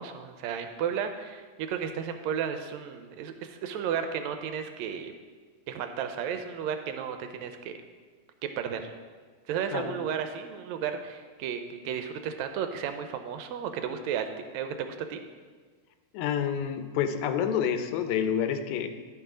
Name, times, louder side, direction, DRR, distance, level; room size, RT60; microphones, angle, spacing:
voice 1, 0.0-5.1 5.7-7.7 8.6-8.9 9.5-14.3 14.5-15.2, right 8 dB, 80° right, 7 dB, 1.7 m, -33 dB
voice 2, 16.1-18.9, left 8 dB, 80° left, 8 dB, 1.9 m, -28 dB
11.0 x 4.7 x 5.0 m, 1.5 s
omnidirectional pair, 3.4 m